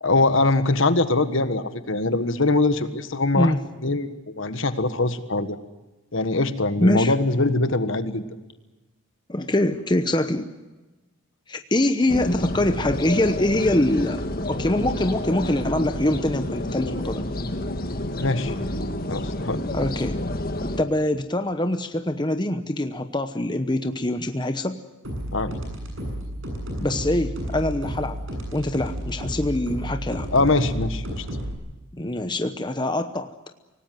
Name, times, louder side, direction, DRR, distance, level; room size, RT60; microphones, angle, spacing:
voice 1, 0.0-3.5 3.8-5.6 6.1-8.2 18.2-18.5 19.1-19.6 25.3-25.5 30.3-31.2, left 2 dB, 60° left, 11 dB, 1.5 m, -22 dB
voice 2, 6.8-7.1 9.3-10.5 11.5-17.2 19.7-20.2 20.6-24.8 26.8-28.2 28.5-30.3 31.9-33.3, left 1 dB, 20° left, 8 dB, 0.9 m, -24 dB
sound 1, 12.1-20.8, left 1 dB, 40° left, 1.7 m, -29 dB
sound 2, 25.0-31.5, equal, 60° right, 7.7 m, -32 dB
25.5 x 18.5 x 9.2 m, 1.1 s
head